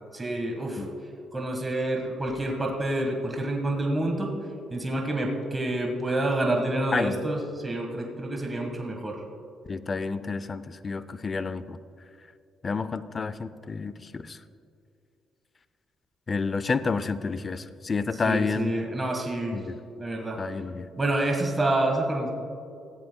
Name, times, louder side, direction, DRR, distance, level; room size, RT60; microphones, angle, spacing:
voice 1, 0.1-0.8 1.3-4.3 4.7-9.2 18.2-19.6 20.0-20.4 21.0-22.3, right 1 dB, 20° right, 1 dB, 1.6 m, -28 dB
voice 2, 9.7-11.8 12.6-14.4 16.3-18.7 19.5-19.7 20.4-20.9, left 4 dB, 35° left, 14 dB, 0.5 m, -30 dB
19.5 x 15.0 x 2.3 m, 2.5 s
cardioid pair, 90°, 0 cm